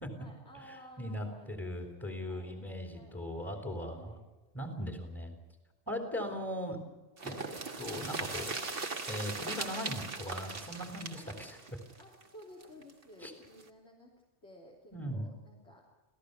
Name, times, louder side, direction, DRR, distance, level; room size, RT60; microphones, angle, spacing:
voice 1, 0.2-4.2 11.2-11.3 12.0-15.9, equal, 60° left, -3 dB, 3.8 m, -55 dB
voice 2, 1.0-4.2 4.5-5.3 5.9-6.8 7.2-8.5 9.1-11.8 13.2-13.3 14.9-15.3, equal, 10° left, 3 dB, 3.1 m, -39 dB
sound 1, 7.2-12.9 13.2-13.3 13.6-13.7, right 3 dB, 50° right, 1.9 m, -39 dB
27.0 x 17.0 x 6.7 m, 1.1 s
omnidirectional pair, 1.3 m